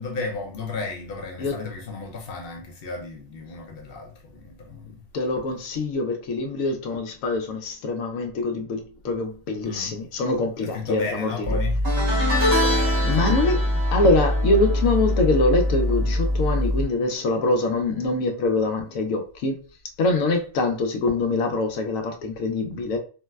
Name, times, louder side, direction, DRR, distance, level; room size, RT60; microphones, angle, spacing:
voice 1, 0.0-5.0 9.6-10.0 10.6-11.8 12.3-13.8, left 3 dB, 60° left, 0.6 m, -34 dB
voice 2, 5.1-11.5 13.0-19.6 20.0-23.0, left 2 dB, 85° left, 1.0 m, -24 dB
sound 1, 11.4-16.9, left 1 dB, 30° right, 0.9 m, -24 dB
sound 2, 11.8-17.2 17.5-17.9 19.1-19.2, equal, 75° right, 1.4 m, -28 dB
3.7 x 2.1 x 2.2 m
omnidirectional pair, 1.4 m